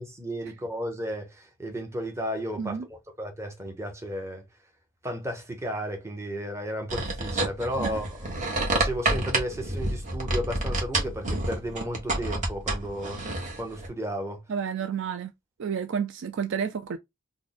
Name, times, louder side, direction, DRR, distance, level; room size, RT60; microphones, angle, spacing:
voice 1, 0.0-4.4 5.0-8.4 8.7-13.2 13.6-14.4, equal, 10° right, 0.9 m, -34 dB
sound 1, 6.9-13.9, right 2 dB, 35° right, 1.1 m, -29 dB
voice 2, 14.5-15.3 15.6-17.0, right 7 dB, 55° right, 0.4 m, -30 dB
3.3 x 2.1 x 3.9 m
head